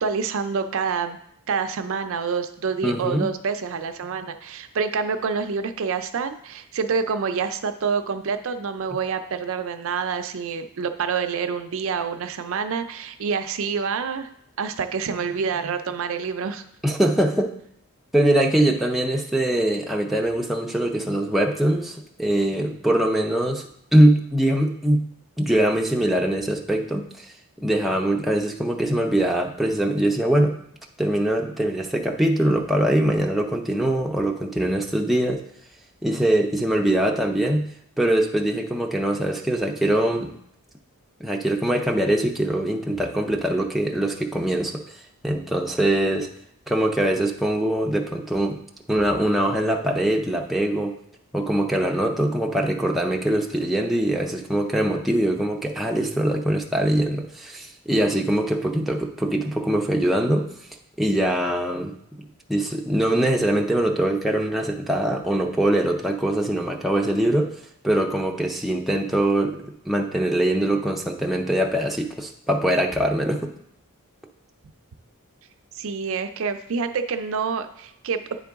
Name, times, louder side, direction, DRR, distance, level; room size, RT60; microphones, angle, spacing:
voice 1, 0.0-1.2 1.5-14.3 14.6-16.6 75.7-78.4, right 5 dB, 60° right, 8 dB, 0.4 m, -27 dB
voice 2, 2.8-3.3 16.8-17.5 18.1-23.6 23.9-25.1 25.4-27.2 27.6-30.6 31.0-35.4 36.0-37.7 38.0-40.4 41.2-44.8 45.2-46.3 46.7-48.6 48.9-51.0 51.3-60.5 61.0-67.5 67.8-69.6 69.9-73.5, right 1 dB, ahead, 0 dB, 0.5 m, -22 dB
9.3 x 3.8 x 3.5 m, 0.71 s
head